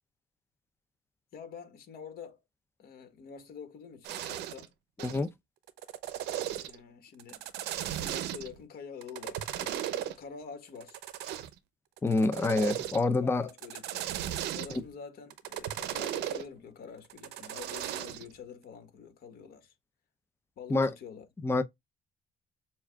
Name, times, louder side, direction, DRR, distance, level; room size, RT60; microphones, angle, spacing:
voice 1, 1.3-2.4 2.8-4.7 6.6-7.4 8.0-11.0 12.4-12.6 13.1-14.0 14.5-19.7 20.5-21.3, left 6 dB, 65° left, 1.7 m, -47 dB
sound 1, 4.0-4.7 5.0-5.2 5.7-6.8 7.2-8.6 9.0-10.1 10.8-11.6 12.0-13.1 13.5-14.9 15.3-16.4 17.1-18.3, right 11 dB, 85° right, 0.7 m, -36 dB
voice 2, 5.0-5.3 12.0-13.4 14.7-14.8 20.7-20.9 21.4-21.6, left 3 dB, 15° left, 0.5 m, -27 dB
7.0 x 2.5 x 2.3 m
cardioid pair, 110°, 17 cm